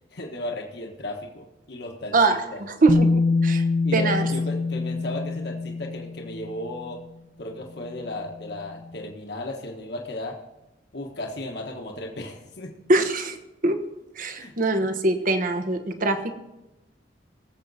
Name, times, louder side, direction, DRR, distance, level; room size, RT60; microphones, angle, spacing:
voice 1, 0.1-2.6 3.8-7.0 7.4-10.4 10.9-12.7 14.4-14.5, left 1 dB, 65° left, 0 dB, 1.4 m, -35 dB
voice 2, 2.1-3.6 3.9-4.3 12.9-13.4 13.6-13.8 14.1-16.3, right 2 dB, 50° right, 8 dB, 1.2 m, -23 dB
Bass guitar, 2.9-6.8 8.0-8.1, left 3 dB, 30° left, 0.6 m, -24 dB
19.5 x 7.5 x 4.1 m, 0.93 s
head